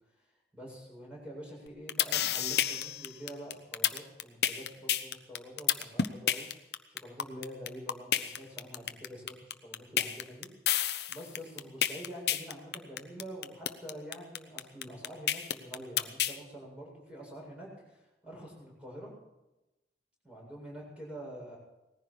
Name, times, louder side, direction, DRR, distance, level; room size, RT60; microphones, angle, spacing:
voice 1, 0.5-10.5 11.1-19.1 20.2-21.6, equal, 5° right, -3 dB, 7.7 m, -46 dB
sound 1, 1.7-16.4, left 10 dB, 65° left, 0.9 m, -29 dB
19.0 x 15.0 x 4.9 m, 0.97 s
head